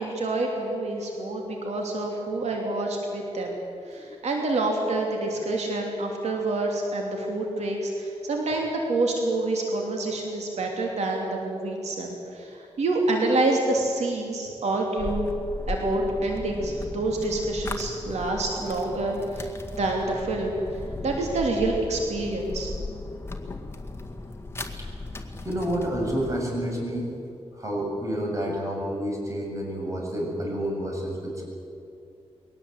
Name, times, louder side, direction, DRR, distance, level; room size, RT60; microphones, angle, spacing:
voice 1, 0.0-3.6 3.9-12.5 12.8-15.3 15.7-20.6 21.0-22.7, right 2 dB, 85° right, 0 dB, 3.0 m, -27 dB
sound 1, 15.0-26.4, left 2 dB, 20° left, 1.9 m, -36 dB
voice 2, 25.4-27.1 27.6-31.4, equal, 30° right, -1 dB, 7.4 m, -29 dB
22.5 x 18.5 x 8.2 m, 2.6 s
wide cardioid pair, 100°, 11 cm